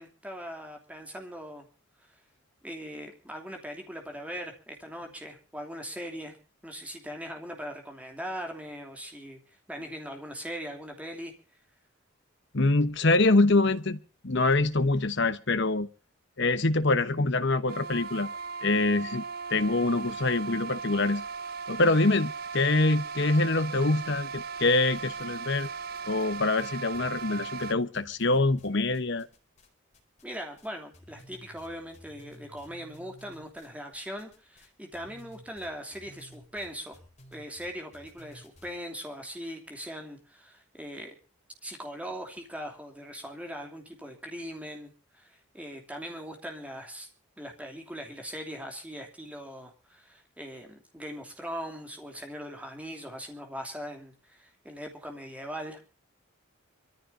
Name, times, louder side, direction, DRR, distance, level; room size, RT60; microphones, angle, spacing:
voice 1, 0.0-1.7 2.6-6.3 6.6-11.3 30.2-37.0 37.3-41.1 41.6-47.1 47.4-55.8, equal, 5° right, 2.9 m, -40 dB
voice 2, 12.5-15.9 16.4-18.3 18.6-19.2 19.5-21.2 21.7-25.7 26.1-29.3, left 2 dB, 55° left, 1.0 m, -25 dB
sound 1, 17.7-27.7, right 5 dB, 45° right, 0.8 m, -38 dB
sound 2, 25.0-25.7 25.9-29.7 29.9-30.7 30.9-38.7, equal, 30° left, 4.3 m, -54 dB
26.0 x 14.5 x 2.7 m
head